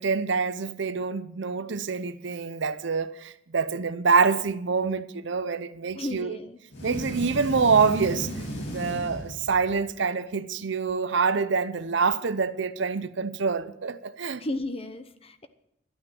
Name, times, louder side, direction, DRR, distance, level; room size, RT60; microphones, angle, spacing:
voice 1, 0.0-6.4 6.8-8.3 8.7-14.5, right 5 dB, 60° right, 0.6 m, -26 dB
voice 2, 5.9-6.6 14.4-15.5, left 1 dB, 30° left, 0.9 m, -34 dB
sound 1, 6.7-9.9, equal, 60° left, 2.6 m, -35 dB
12.0 x 9.0 x 7.6 m
head